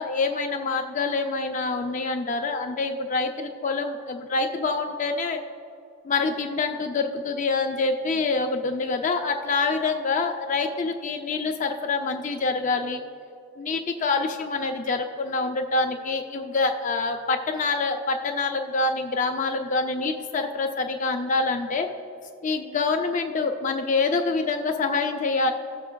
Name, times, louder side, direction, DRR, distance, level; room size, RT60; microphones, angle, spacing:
voice 1, 0.0-5.4 6.0-13.0 13.6-21.9 22.4-25.5, left 3 dB, 35° left, 4 dB, 0.4 m, -26 dB
16.0 x 7.2 x 2.3 m, 2.5 s
head